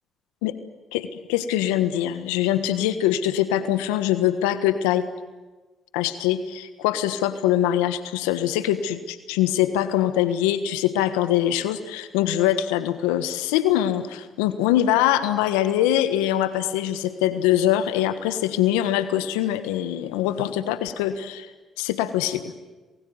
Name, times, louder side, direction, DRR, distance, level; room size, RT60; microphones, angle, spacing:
voice 1, 0.9-5.0 5.9-21.5 21.8-22.5, left 12 dB, 85° left, 11 dB, 1.4 m, -23 dB
28.0 x 21.5 x 9.7 m, 1.2 s
hypercardioid pair, 55°, 0 cm